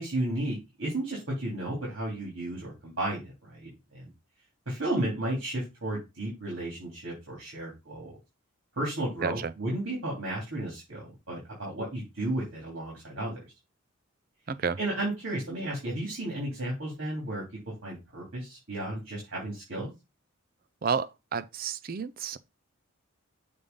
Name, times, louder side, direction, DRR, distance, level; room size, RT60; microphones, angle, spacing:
voice 1, 0.0-4.1 4.7-8.1 8.8-13.4 14.8-17.4 17.8-19.9, right 1 dB, 65° right, 3.1 m, -33 dB
voice 2, 9.2-9.5 14.5-14.8 20.8-22.4, right 6 dB, 40° right, 0.4 m, -31 dB
6.7 x 3.5 x 5.3 m
head